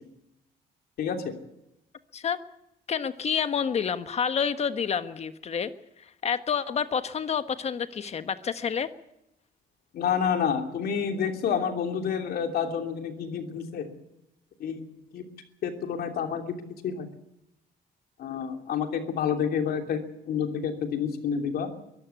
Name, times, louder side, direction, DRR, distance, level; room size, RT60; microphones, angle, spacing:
voice 1, 1.0-1.3 9.9-13.9 14.6-14.9 15.1-15.3 15.6-16.5 16.8-17.1 18.2-21.7, left 7 dB, 70° left, 5 dB, 3.1 m, -29 dB
voice 2, 2.9-5.7 6.0-8.9, left 7 dB, 40° left, 11 dB, 1.3 m, -29 dB
23.0 x 14.0 x 8.4 m, 0.85 s
cardioid pair, 135°, 16 cm